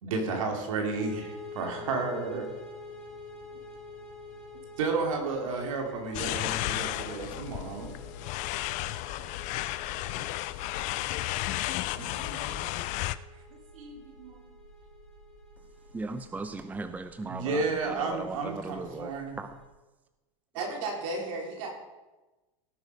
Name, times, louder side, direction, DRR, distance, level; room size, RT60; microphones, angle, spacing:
voice 1, 0.0-2.5 4.8-7.9 11.9-12.1 13.7-14.4 17.2-19.4, right 4 dB, 85° right, 2 dB, 2.6 m, -32 dB
sound 1, 0.9-19.6, left 2 dB, 5° left, 4.0 m, -48 dB
sound 2, 6.1-13.2, left 16 dB, 50° left, 0.5 m, -33 dB
voice 2, 12.1-12.7 20.5-21.7, right 2 dB, 65° right, 0 dB, 4.2 m, -35 dB
voice 3, 15.9-19.5, right 3 dB, 10° right, 9 dB, 0.7 m, -38 dB
17.5 x 6.3 x 5.3 m, 1.1 s
supercardioid pair, 120°, 17 cm